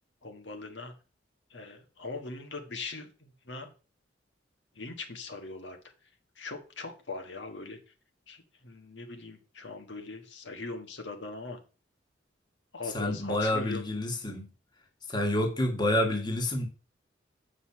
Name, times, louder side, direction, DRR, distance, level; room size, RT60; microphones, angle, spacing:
voice 1, 0.2-0.9 1.5-3.7 4.7-5.9 6.3-7.9 8.3-11.6 12.7-13.8, left 3 dB, 75° left, 1.5 m, -41 dB
voice 2, 12.9-14.5 15.1-16.7, left 1 dB, 25° left, 1.6 m, -28 dB
7.9 x 5.5 x 5.7 m
head